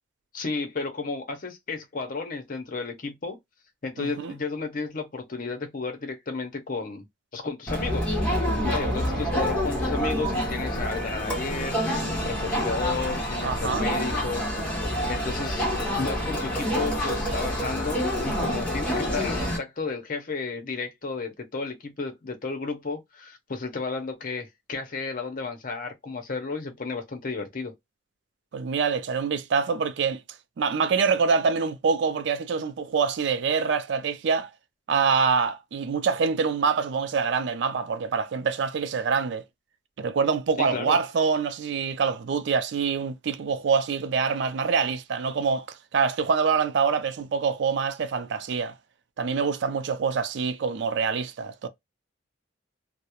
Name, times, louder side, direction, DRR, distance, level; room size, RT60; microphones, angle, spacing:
voice 1, 0.3-3.4 3.8-7.0 7.3-8.2 8.6-27.7 40.6-41.0, left 4 dB, 45° left, 0.6 m, -33 dB
voice 2, 4.0-4.3 8.8-9.2 13.4-13.9 28.5-30.2 30.6-34.5 34.9-39.4 40.0-48.7 49.2-51.7, right 5 dB, 65° right, 0.3 m, -25 dB
Crowd, 7.7-19.6, equal, 5° left, 0.8 m, -27 dB
2.3 x 2.0 x 2.8 m
head